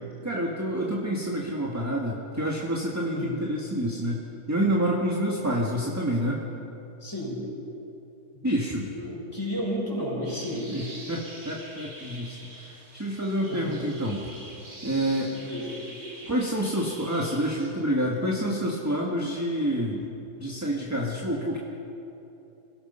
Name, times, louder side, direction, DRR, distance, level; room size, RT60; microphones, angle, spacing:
voice 1, 0.2-4.2 4.5-6.4 8.4-8.9 10.7-14.2 14.8-15.3 16.2-20.1 20.4-21.6, equal, 10° right, -2 dB, 1.6 m, -28 dB
voice 2, 3.1-3.4 7.0-7.4 8.5-10.7 13.5-13.7 15.3-15.8, equal, 15° left, -4 dB, 5.7 m, -33 dB
sound 1, 10.2-17.7, right 1 dB, 55° right, 4.0 m, -45 dB
26.5 x 17.5 x 5.5 m, 2.9 s
omnidirectional pair, 1.7 m